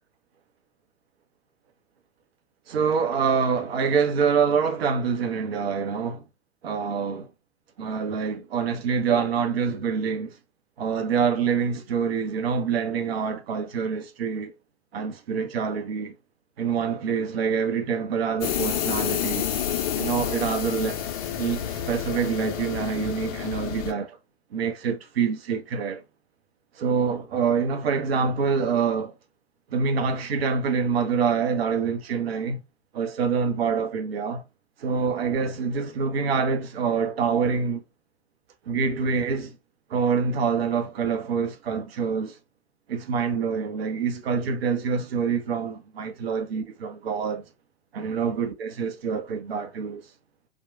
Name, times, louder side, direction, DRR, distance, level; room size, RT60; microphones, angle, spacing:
voice 1, 2.7-6.2 6.6-7.3 7.8-10.4 10.8-14.5 14.9-16.1 16.6-19.5 19.9-21.0 21.4-24.2 24.5-26.0 26.8-29.1 29.7-32.6 32.9-34.4 34.8-37.8 38.7-39.6 39.9-42.4 42.9-47.4 47.9-50.0, right 6 dB, 65° right, 0.6 m, -26 dB
sound 1, 18.4-23.9, left 10 dB, 35° left, 0.4 m, -29 dB
2.9 x 2.1 x 2.4 m
figure-of-eight pair, 95°, 33 cm